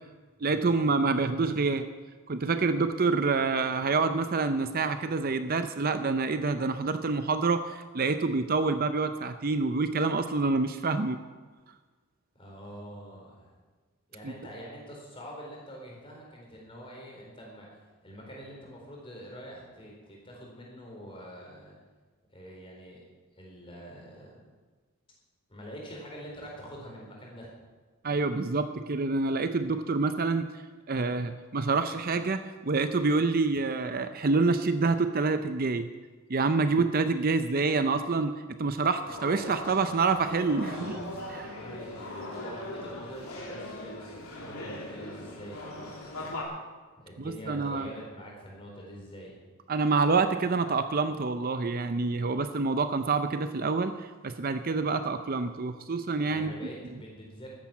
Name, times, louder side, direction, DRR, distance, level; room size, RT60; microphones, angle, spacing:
voice 1, 0.4-1.9 2.3-11.2 14.2-14.3 28.0-30.5 30.9-35.9 36.3-41.0 41.3-41.5 47.2-47.9 49.7-56.5, right 4 dB, 40° right, 9 dB, 0.6 m, -27 dB
voice 2, 12.3-13.5 14.1-17.7 18.0-21.8 22.3-23.0 23.4-24.4 25.5-27.5 41.5-46.4 47.0-49.4 56.3-57.5, equal, 25° left, -2 dB, 4.3 m, -45 dB
sound 1, 39.1-46.4, left 1 dB, 75° left, 2.8 m, -40 dB
13.5 x 10.5 x 7.3 m, 1.4 s
head